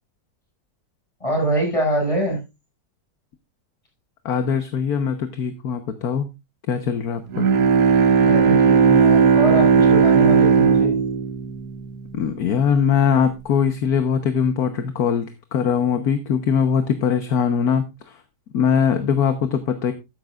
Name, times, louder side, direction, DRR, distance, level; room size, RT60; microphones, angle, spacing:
voice 1, 1.2-2.4 8.1-11.0, right 1 dB, 15° left, 2 dB, 6.5 m, -24 dB
voice 2, 4.2-6.3 6.7-7.5 12.1-18.2 18.5-19.9, left 7 dB, 60° left, 8 dB, 1.5 m, -21 dB
Bowed string instrument, 7.3-12.4, right 6 dB, 60° right, 1.3 m, -16 dB
13.0 x 10.5 x 2.4 m, 0.24 s
omnidirectional pair, 1.9 m